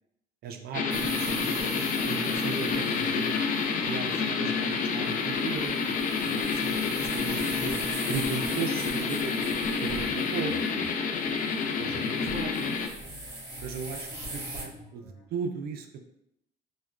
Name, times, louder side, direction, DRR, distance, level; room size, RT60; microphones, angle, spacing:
voice 1, 0.4-3.4 3.8-7.8 8.1-10.5 11.5-12.9 13.6-15.0 15.3-16.0, right 6 dB, 65° right, 6 dB, 0.4 m, -37 dB
sound 1, 0.7-12.9, left 5 dB, 50° left, 0.4 m, -29 dB
sound 2, 0.9-14.6, right 1 dB, 50° right, 1.3 m, -41 dB
sound 3, 7.1-10.8 11.7-15.2, equal, 5° left, 0.7 m, -47 dB
3.9 x 2.1 x 2.4 m, 0.76 s
cardioid pair, 110°, 17 cm